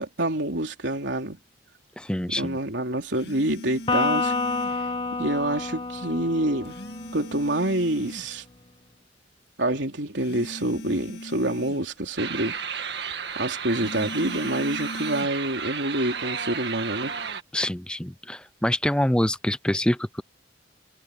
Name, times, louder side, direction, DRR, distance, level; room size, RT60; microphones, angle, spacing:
voice 1, 0.0-1.4 2.3-4.3 5.2-6.8 7.1-8.4 9.6-12.6 13.4-17.2, right 1 dB, 85° right, 3.4 m, -27 dB
voice 2, 2.0-2.6 17.5-20.2, left 1 dB, 5° left, 0.5 m, -25 dB
sound 1, 3.1-4.9 6.6-8.4 10.2-11.9 13.7-15.3, equal, 60° left, 2.1 m, -39 dB
Electric guitar, 3.9-7.4, left 3 dB, 30° left, 1.2 m, -28 dB
sound 2, 12.2-17.4, right 6 dB, 65° right, 1.9 m, -33 dB
head